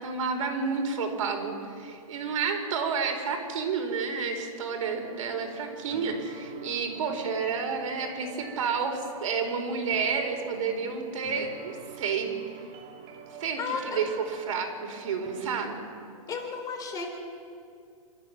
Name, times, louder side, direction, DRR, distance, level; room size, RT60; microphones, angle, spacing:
voice 1, 0.0-12.3 13.4-13.6 13.8-15.8, right 5 dB, 65° right, 4 dB, 4.7 m, -30 dB
sound 1, 4.9-15.5, right 5 dB, 30° right, 2.9 m, -47 dB
voice 2, 13.6-14.1 16.3-17.1, left 5 dB, 20° left, 2 dB, 3.9 m, -33 dB
27.5 x 14.0 x 7.9 m, 2.3 s
hypercardioid pair, 145°, 19 cm